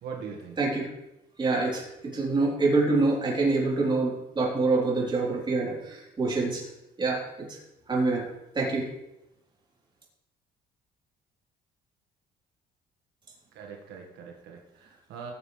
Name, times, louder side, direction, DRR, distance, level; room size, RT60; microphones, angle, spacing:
voice 1, 0.0-0.6 13.5-15.3, right 6 dB, 80° right, 0 dB, 1.7 m, -41 dB
voice 2, 1.4-1.8 2.1-6.6 7.0-7.6 7.9-8.3 8.5-8.9, right 3 dB, 25° right, -4 dB, 3.9 m, -26 dB
19.5 x 7.3 x 3.4 m, 0.90 s
cardioid pair, 110°, 17 cm